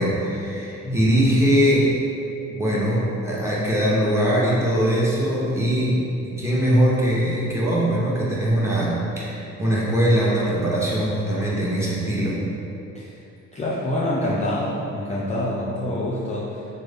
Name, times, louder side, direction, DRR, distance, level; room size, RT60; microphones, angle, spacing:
voice 1, 0.0-1.9 2.5-12.4, equal, 10° right, -7 dB, 0.9 m, -21 dB
voice 2, 0.8-1.3 12.9-13.1 13.5-16.7, left 1 dB, 20° left, -6 dB, 0.4 m, -26 dB
3.5 x 2.1 x 3.4 m, 2.8 s
supercardioid pair, 65°, 32 cm